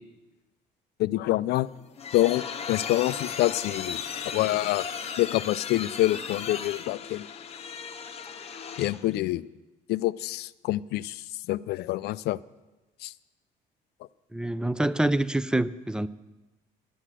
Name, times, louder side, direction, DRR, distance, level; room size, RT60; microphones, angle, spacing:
voice 1, 1.0-1.7 2.1-4.0 4.3-4.9 5.2-7.3 8.8-9.5 9.9-11.2 11.5-12.4 13.0-13.1, left 16 dB, 75° left, 18 dB, 0.4 m, -26 dB
sound 1, 1.6-9.1, left 7 dB, 35° left, 0.9 m, -36 dB
voice 2, 14.3-16.1, right 1 dB, 5° right, 16 dB, 0.4 m, -26 dB
11.0 x 8.2 x 7.6 m, 1.1 s
cardioid pair, 110°, 17 cm